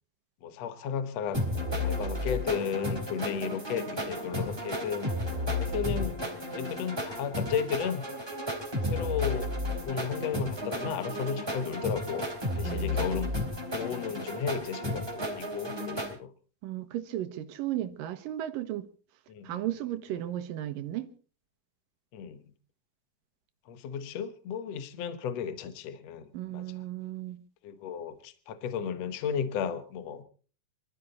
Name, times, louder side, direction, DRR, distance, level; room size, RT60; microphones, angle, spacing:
voice 1, 0.4-1.4 1.8-5.1 5.6-6.2 6.5-8.0 8.8-9.5 9.8-12.3 12.5-13.3 13.7-16.3 19.3-19.6 20.2-20.3 22.1-22.4 23.7-26.6 27.6-30.2, left 7 dB, 60° left, 2.1 m, -34 dB
sound 1, 1.3-16.1, left 1 dB, 5° right, 3.3 m, -33 dB
voice 2, 12.6-13.1 16.6-18.9 19.4-21.1 26.3-27.4, right 13 dB, 90° right, 2.8 m, -35 dB
24.5 x 13.5 x 4.1 m
omnidirectional pair, 3.8 m